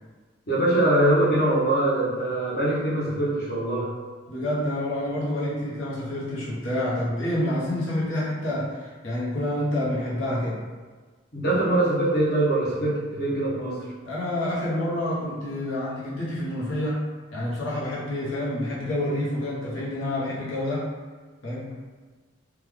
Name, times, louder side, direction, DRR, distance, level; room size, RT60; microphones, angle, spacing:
voice 1, 0.5-3.9 11.3-13.8, right 1 dB, 50° left, -8 dB, 0.9 m, -23 dB
voice 2, 4.3-10.6 14.0-17.0 17.3-20.8 21.4-21.7, left 1 dB, 80° left, -7 dB, 0.9 m, -28 dB
3.2 x 2.2 x 3.4 m, 1.4 s
head